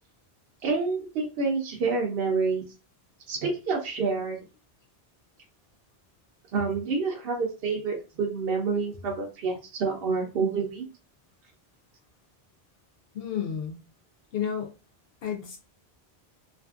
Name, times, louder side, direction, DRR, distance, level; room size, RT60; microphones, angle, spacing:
voice 1, 0.6-2.6 3.3-4.4 6.5-10.9, right 4 dB, 70° right, 0 dB, 0.8 m, -28 dB
voice 2, 13.1-13.8 14.3-14.7 15.2-15.6, left 8 dB, 70° left, 3 dB, 0.8 m, -31 dB
2.5 x 2.5 x 2.3 m, 0.31 s
omnidirectional pair, 1.1 m